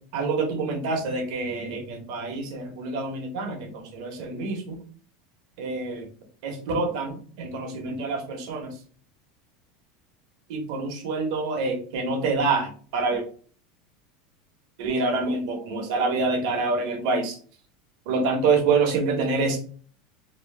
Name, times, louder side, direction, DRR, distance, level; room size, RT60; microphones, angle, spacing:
voice 1, 0.1-4.8 5.6-6.1 6.4-8.7 10.5-13.2 14.8-17.4 18.1-19.6, right 3 dB, 70° right, 3 dB, 1.0 m, -26 dB
2.9 x 2.0 x 3.2 m, 0.43 s
supercardioid pair, 140°, 3 cm